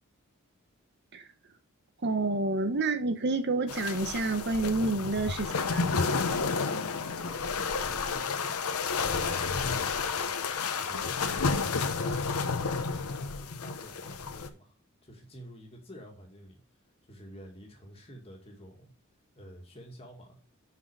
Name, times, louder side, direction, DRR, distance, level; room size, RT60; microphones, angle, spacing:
voice 1, 2.0-5.9, right 3 dB, 50° right, 0.8 m, -29 dB
sound 1, 3.7-14.5, left 4 dB, 85° left, 0.9 m, -31 dB
voice 2, 6.6-8.5 9.0-10.4 10.7-14.8 15.0-16.6 17.0-18.9 19.4-20.4, equal, 25° left, 2.0 m, -50 dB
6.0 x 5.7 x 4.8 m
head